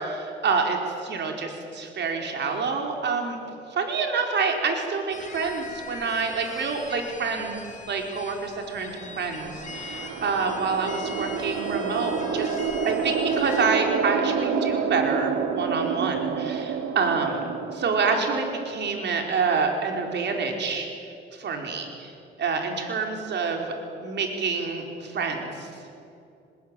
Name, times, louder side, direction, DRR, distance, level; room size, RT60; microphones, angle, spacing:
voice 1, 0.0-3.4 3.7-7.6 7.9-20.9 21.3-22.1 22.4-23.6 24.0-25.7, right 4 dB, 60° right, 3 dB, 4.8 m, -27 dB
sound 1, 5.1-13.6, left 4 dB, 40° left, 3.4 m, -42 dB
sound 2, 9.0-19.4, right 6 dB, 85° right, 2.2 m, -29 dB
24.0 x 21.5 x 9.2 m, 2.6 s
cardioid pair, 90°, 20 cm